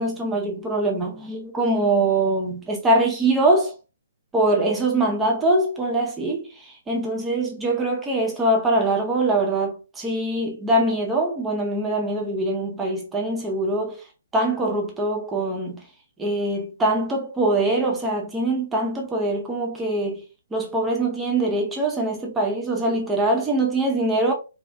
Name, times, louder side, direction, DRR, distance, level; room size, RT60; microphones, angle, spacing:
voice 1, 0.0-3.7 4.3-6.5 6.9-14.0 14.3-15.8 16.2-20.2 20.5-24.3, right 2 dB, 10° right, 0.6 m, -23 dB
2.4 x 2.3 x 2.2 m
figure-of-eight pair, 130°, 0 cm